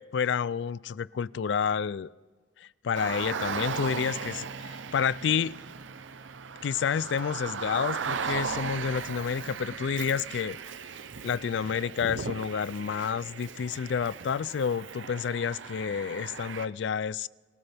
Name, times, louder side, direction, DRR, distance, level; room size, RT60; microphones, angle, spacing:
voice 1, 0.0-2.1 2.6-5.6 6.6-10.6 11.2-17.3, left 7 dB, 70° left, 0.3 m, -29 dB
Car, 2.9-16.7, right 5 dB, 85° right, 0.7 m, -37 dB
26.5 x 14.0 x 3.5 m
head